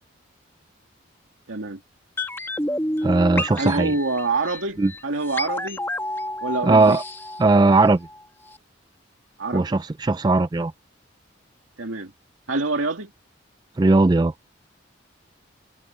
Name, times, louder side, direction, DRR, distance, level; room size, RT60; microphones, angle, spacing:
voice 1, 1.5-1.8 3.6-5.8 6.4-7.0 9.4-9.7 11.8-12.1 12.5-13.1, right 3 dB, 90° right, 2.5 m, -26 dB
sound 1, 2.2-8.2 8.5-8.6, left 1 dB, 10° left, 1.8 m, -30 dB
voice 2, 3.0-3.9 4.8-4.9 6.6-7.0 7.4-8.1 9.5-10.7 13.8-14.3, right 3 dB, 20° right, 0.3 m, -18 dB
open air
head